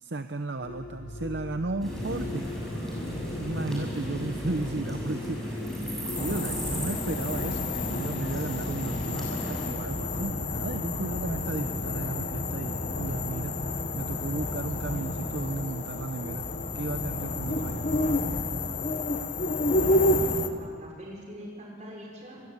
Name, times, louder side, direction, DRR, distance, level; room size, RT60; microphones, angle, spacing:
voice 1, 0.0-2.5 3.4-13.6 13.9-16.5 16.7-17.9, right 2 dB, 60° right, 8 dB, 0.7 m, -34 dB
sound 1, 0.6-18.3, left 2 dB, 75° left, 1.9 m, -43 dB
sound 2, 1.8-9.7, equal, ahead, 6.7 m, -35 dB
sound 3, 6.1-20.5, left 1 dB, 40° left, 1.1 m, -30 dB
voice 2, 19.6-22.4, equal, 35° right, -2 dB, 5.9 m, -44 dB
24.0 x 20.0 x 8.1 m, 2.2 s
head